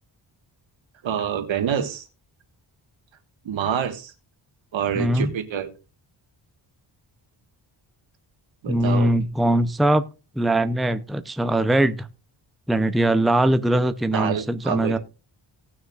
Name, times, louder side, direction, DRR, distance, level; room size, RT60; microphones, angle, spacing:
voice 1, 1.0-2.1 3.4-4.1 4.7-5.7 8.6-9.1 14.1-15.0, right 8 dB, 70° right, 8 dB, 1.7 m, -26 dB
voice 2, 5.0-5.3 8.7-10.0 10.4-12.1 12.7-15.0, right 1 dB, ahead, 11 dB, 0.7 m, -21 dB
18.5 x 6.4 x 2.5 m, 0.31 s
cardioid pair, 90°, 47 cm